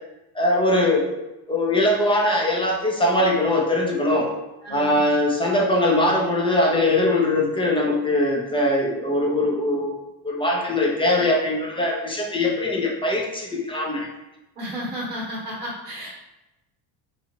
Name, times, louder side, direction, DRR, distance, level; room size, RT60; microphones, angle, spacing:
voice 1, 0.3-1.1 1.5-4.3 4.7-10.0 10.2-14.1, left 1 dB, 10° left, -1 dB, 0.6 m, -21 dB
voice 2, 4.6-5.0 14.5-16.1, equal, 20° right, -8 dB, 1.1 m, -32 dB
2.8 x 2.4 x 2.9 m, 0.97 s
supercardioid pair, 95°, 44 cm